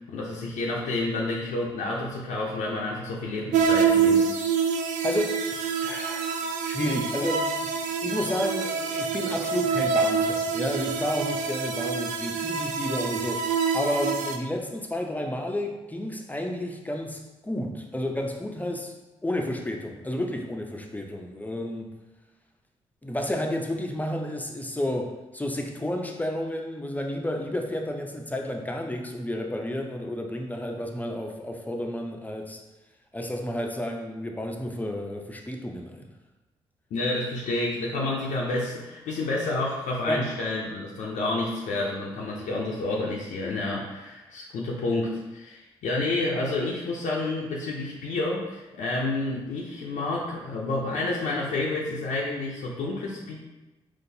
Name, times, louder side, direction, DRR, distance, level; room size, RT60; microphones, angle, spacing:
voice 1, 0.1-4.3 36.9-53.3, left 2 dB, 70° left, -3 dB, 0.5 m, -29 dB
sound 1, 3.5-14.4, right 5 dB, 70° right, 0.4 m, -26 dB
voice 2, 5.0-7.7 8.0-13.4 13.7-18.9 19.2-21.9 23.0-32.6 33.1-36.1 40.1-40.3, left 1 dB, 10° left, 2 dB, 0.6 m, -31 dB
3.8 x 2.5 x 2.7 m, 1.1 s
supercardioid pair, 45°, 13 cm